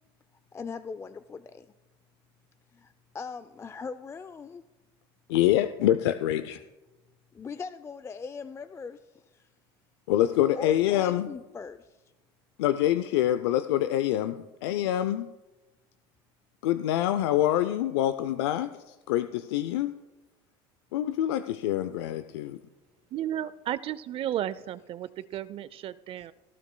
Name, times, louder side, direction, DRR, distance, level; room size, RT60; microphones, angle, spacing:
voice 1, 0.5-1.7 2.7-4.6 7.3-9.5 10.6-12.0 26.2-26.3, left 5 dB, 20° left, 12 dB, 0.4 m, -40 dB
voice 2, 5.3-6.6 10.1-11.3 12.6-15.3 16.6-19.9 20.9-22.6, left 12 dB, 85° left, 11 dB, 0.5 m, -26 dB
voice 3, 23.1-26.3, right 11 dB, 45° right, 17 dB, 0.4 m, -33 dB
18.5 x 12.0 x 2.2 m, 1.1 s
supercardioid pair, 95°, 13 cm